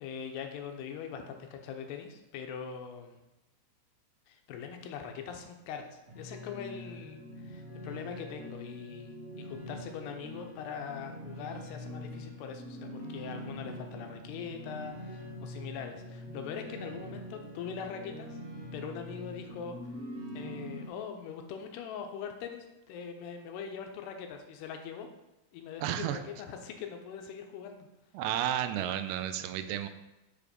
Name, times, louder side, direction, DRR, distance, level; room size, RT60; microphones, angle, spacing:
voice 1, 0.0-3.2 4.3-18.4 18.7-19.9 20.3-25.1 25.5-27.9, left 7 dB, 90° left, 5 dB, 2.7 m, -42 dB
sound 1, 6.1-20.9, left 1 dB, 50° right, 0.8 m, -44 dB
voice 2, 25.8-26.2 28.1-29.9, right 11 dB, 85° right, 10 dB, 2.6 m, -32 dB
6.8 x 5.1 x 5.1 m, 0.99 s
omnidirectional pair, 4.8 m